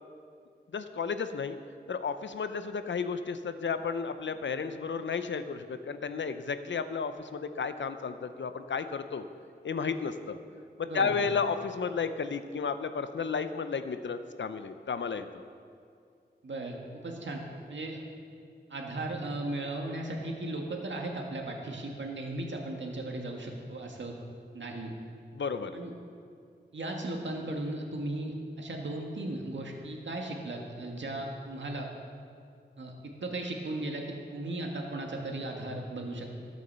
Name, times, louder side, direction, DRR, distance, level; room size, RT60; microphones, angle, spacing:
voice 1, 0.7-1.6 1.9-9.2 9.6-10.4 10.8-15.3 25.3-25.7, left 5 dB, 90° left, 10 dB, 0.7 m, -33 dB
voice 2, 10.8-11.2 16.4-18.0 18.7-24.2 24.5-24.9 25.7-25.9 26.7-31.9 32.8-36.3, right 2 dB, 90° right, 1 dB, 1.7 m, -36 dB
13.5 x 8.3 x 6.8 m, 2.3 s
wide cardioid pair, 90°, 19 cm